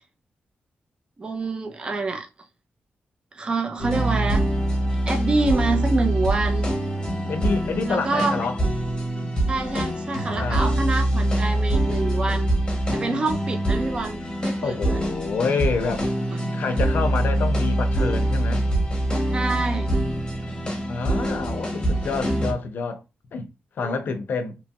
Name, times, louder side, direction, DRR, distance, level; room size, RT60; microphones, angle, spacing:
voice 1, 1.2-2.3 3.3-4.4 5.1-6.7 7.9-8.5 9.5-12.5 12.9-15.0 16.3-16.4 19.3-19.9 23.8-24.0, right 3 dB, 25° right, 0.4 m, -26 dB
sound 1, 3.8-22.5, right 1 dB, 20° left, 0.8 m, -24 dB
voice 2, 7.3-8.6 10.3-10.8 14.6-16.1 16.5-18.7 20.9-23.0 23.3-23.5 23.8-24.6, left 4 dB, 65° left, 0.5 m, -27 dB
2.9 x 2.2 x 2.7 m
wide cardioid pair, 180°, 4 cm